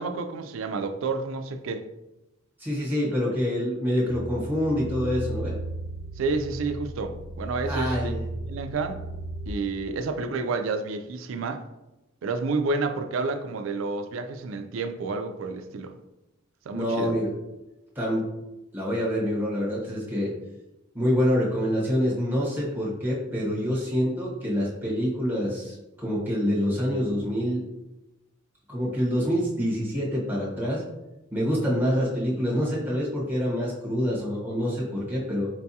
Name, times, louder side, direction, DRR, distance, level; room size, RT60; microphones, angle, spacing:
voice 1, 0.0-1.8 6.2-8.2 8.5-9.0 9.5-11.6 12.2-15.9 16.7-17.1, right 3 dB, 70° right, 7 dB, 0.4 m, -30 dB
voice 2, 2.6-5.6 7.6-8.3 16.7-17.3 17.9-18.2 18.7-20.3 20.9-27.6 28.7-30.8 31.3-35.5, equal, 10° right, -5 dB, 1.0 m, -26 dB
sound 1, 4.0-9.5, right 2 dB, 30° left, 0.9 m, -35 dB
4.5 x 2.3 x 2.7 m, 0.97 s
head